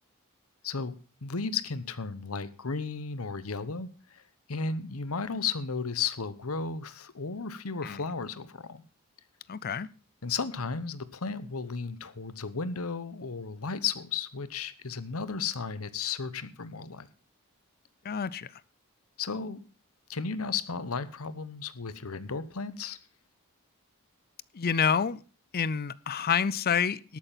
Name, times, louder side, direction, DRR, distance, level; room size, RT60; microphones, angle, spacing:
voice 1, 0.6-0.9 1.2-4.2 4.5-8.8 10.2-17.1 19.2-19.6 20.1-23.0, left 5 dB, 75° left, 1.0 m, -34 dB
voice 2, 9.5-9.9 18.0-18.5 24.5-25.2 25.5-27.2, left 7 dB, 45° left, 0.5 m, -28 dB
12.0 x 9.0 x 5.7 m
head